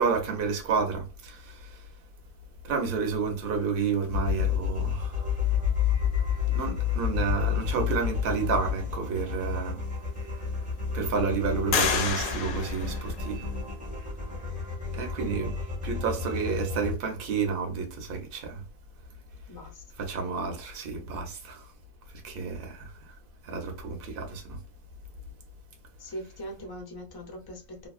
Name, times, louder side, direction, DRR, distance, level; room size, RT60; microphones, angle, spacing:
voice 1, 0.0-1.8 2.6-5.3 6.5-9.8 10.9-13.5 14.9-15.5 15.8-18.6 20.0-21.7 22.2-22.9 23.4-24.6, right 5 dB, 45° right, 0.8 m, -30 dB
sound 1, 4.1-17.0, left 7 dB, 5° right, 0.7 m, -30 dB
sound 2, 9.5-9.6 10.1-10.8 11.7-13.7, left 7 dB, 75° left, 1.0 m, -30 dB
voice 2, 19.5-19.8 26.0-27.9, equal, 35° left, 0.3 m, -41 dB
2.9 x 2.3 x 2.4 m
omnidirectional pair, 1.6 m